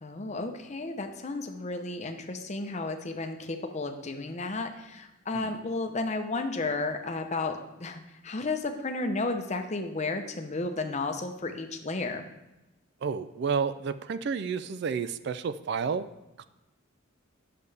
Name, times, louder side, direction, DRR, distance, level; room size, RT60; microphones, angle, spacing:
voice 1, 0.0-12.3, left 3 dB, 35° left, 5 dB, 0.7 m, -33 dB
voice 2, 13.0-16.1, right 6 dB, 55° right, 13 dB, 0.3 m, -30 dB
10.5 x 6.7 x 3.3 m, 0.96 s
head